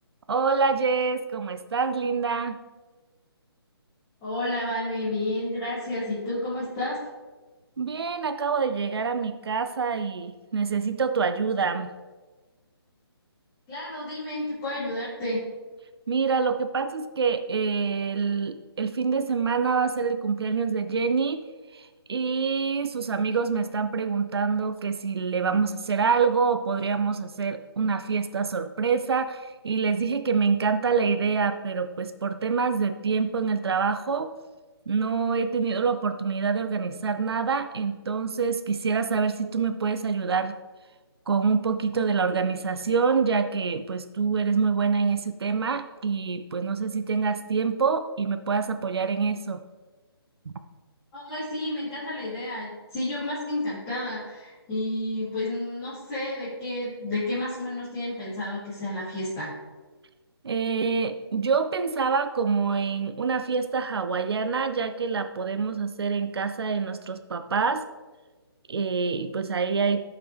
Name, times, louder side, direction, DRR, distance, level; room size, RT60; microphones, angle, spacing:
voice 1, 0.3-2.6 7.8-11.9 16.1-21.4 21.7-34.3 34.9-40.6 41.3-49.6 50.5-50.6 60.4-67.8 68.7-70.2, right 5 dB, 70° right, 9 dB, 0.7 m, -26 dB
voice 2, 4.2-7.0 13.7-15.4 51.1-59.5, left 1 dB, 15° left, -13 dB, 2.7 m, -31 dB
14.0 x 5.8 x 3.5 m, 1.3 s
hypercardioid pair, 170°, 14 cm